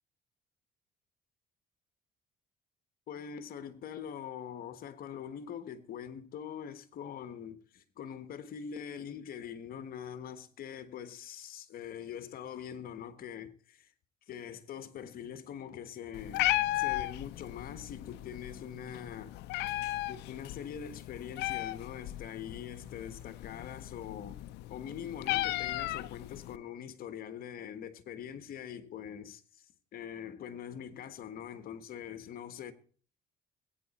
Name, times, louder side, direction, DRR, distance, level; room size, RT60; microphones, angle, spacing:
voice 1, 3.1-13.9 14.3-19.4 20.1-24.4 24.7-32.7, left 8 dB, 60° left, 1.4 m, -43 dB
Meow, 16.1-26.6, left 17 dB, 85° left, 0.6 m, -36 dB
20.0 x 9.2 x 4.2 m
cardioid pair, 110°, 17 cm